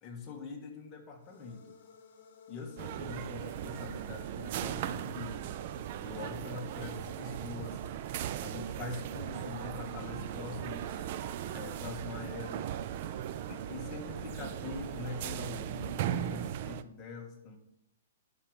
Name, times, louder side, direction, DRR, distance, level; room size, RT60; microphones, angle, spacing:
voice 1, 0.0-1.7 2.5-5.4 6.0-7.8 8.4-11.1 11.5-12.7 13.5-17.6, left 4 dB, 25° left, 1 dB, 1.8 m, -43 dB
sound 1, 1.2-16.4, left 6 dB, 55° left, 2.5 m, -56 dB
sound 2, 2.8-16.8, right 11 dB, 45° right, 0.5 m, -38 dB
9.9 x 6.2 x 5.2 m, 0.78 s
hypercardioid pair, 150°, 0 cm